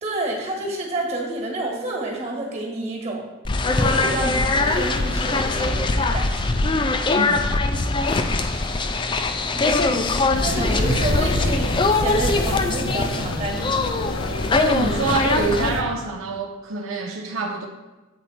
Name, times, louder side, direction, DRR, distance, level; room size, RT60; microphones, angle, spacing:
voice 1, 0.0-3.3 3.7-6.6 10.4-14.0, right 2 dB, 30° right, -1 dB, 1.5 m, -29 dB
sound 1, 3.4-15.7, left 3 dB, 25° left, 0.3 m, -22 dB
voice 2, 7.1-7.5 14.6-17.7, right 3 dB, 75° right, 2 dB, 0.5 m, -26 dB
sound 2, 10.3-15.8, left 1 dB, 75° left, 0.7 m, -28 dB
7.7 x 4.2 x 4.2 m, 1.1 s
head